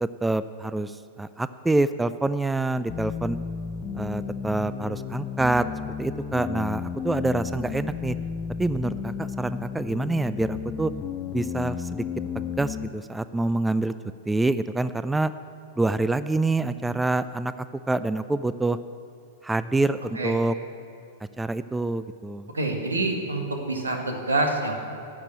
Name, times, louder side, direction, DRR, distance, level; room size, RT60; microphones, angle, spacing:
voice 1, 0.0-3.4 3.9-5.7 6.0-8.2 8.6-10.9 11.3-12.0 12.3-13.9 14.3-15.3 15.8-18.8 19.4-20.6 21.4-22.5, right 2 dB, 10° right, 14 dB, 0.3 m, -26 dB
sound 1, 2.9-12.9, left 6 dB, 30° left, 0.6 m, -33 dB
voice 2, 22.5-24.7, right 2 dB, 85° right, 3 dB, 1.8 m, -26 dB
12.0 x 6.7 x 8.9 m, 2.6 s
figure-of-eight pair, 100°, 0 cm